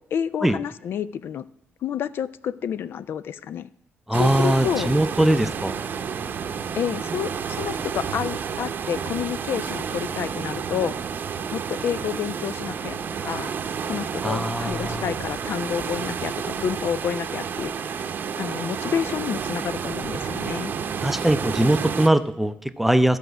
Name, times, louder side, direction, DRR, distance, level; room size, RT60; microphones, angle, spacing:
voice 1, 0.0-1.4 1.8-3.7 4.1-4.9 6.8-10.9 11.5-13.0 13.2-13.5 13.9-18.0 18.4-20.7, left 8 dB, 65° left, 16 dB, 0.4 m, -29 dB
voice 2, 4.1-5.8 14.2-15.1 21.0-23.2, right 1 dB, 5° right, 11 dB, 0.5 m, -21 dB
sound 1, 4.1-22.1, right 6 dB, 50° right, 0.8 m, -30 dB
13.5 x 5.0 x 7.9 m, 0.84 s
cardioid pair, 125°, 4 cm